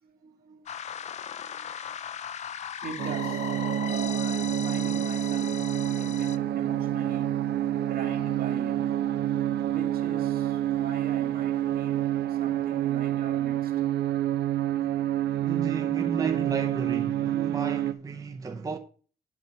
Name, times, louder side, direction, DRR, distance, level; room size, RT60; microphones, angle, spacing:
voice 1, 0.0-2.0 2.8-3.5 3.8-7.4 7.8-8.9 9.6-13.8, right 6 dB, 60° right, 1.7 m, -42 dB
sound 1, 0.7-6.4, left 9 dB, 40° left, 0.4 m, -38 dB
sound 2, 3.0-17.9, right 11 dB, 80° right, 0.6 m, -28 dB
voice 2, 15.4-18.8, right 5 dB, 20° right, 0.6 m, -33 dB
8.3 x 5.1 x 6.6 m
wide cardioid pair, 165°, 17 cm